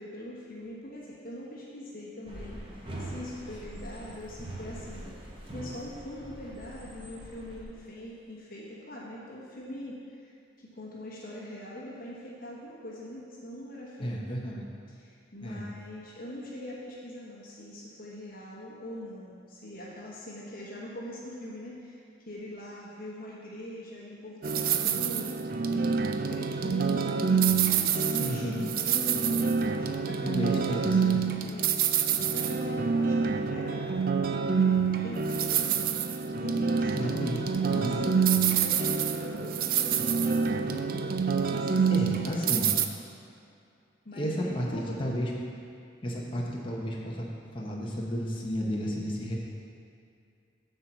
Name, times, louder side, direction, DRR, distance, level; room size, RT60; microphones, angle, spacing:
voice 1, 0.0-5.2 5.5-10.3 10.6-14.3 14.9-30.9 31.4-31.9 32.3-34.1 34.5-35.8 36.3-42.6 44.0-45.2, left 1 dB, 50° left, -5 dB, 1.2 m, -42 dB
sound 1, 2.3-7.6, right 1 dB, 25° right, 1.1 m, -42 dB
voice 2, 14.0-14.7 15.4-15.6 28.2-28.7 30.2-31.2 36.9-38.0 41.9-42.7 44.1-45.3 46.0-47.3 47.5-49.4, equal, 25° left, -3 dB, 0.9 m, -32 dB
sound 2, 24.4-42.9, right 6 dB, 50° right, 0.4 m, -27 dB
7.9 x 4.5 x 6.8 m, 2.4 s
head